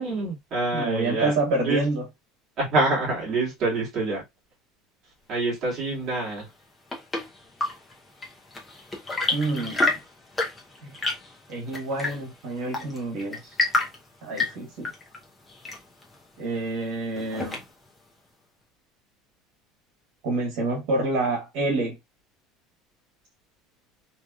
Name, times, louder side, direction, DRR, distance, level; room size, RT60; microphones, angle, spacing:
voice 1, 0.0-1.3 1.6-1.8 2.6-4.2 5.3-6.5, right 2 dB, 30° right, 1.6 m, -26 dB
voice 2, 0.7-2.1 9.3-9.9 10.8-10.9 11.5-13.5 14.2-14.9 16.4-17.6 20.2-21.9, right 2 dB, 65° right, 1.3 m, -28 dB
Chirp tweet / Engine / Tap, 6.5-18.0, left 2 dB, 10° left, 0.7 m, -31 dB
2.9 x 2.8 x 2.3 m
cardioid pair, 175°, 0 cm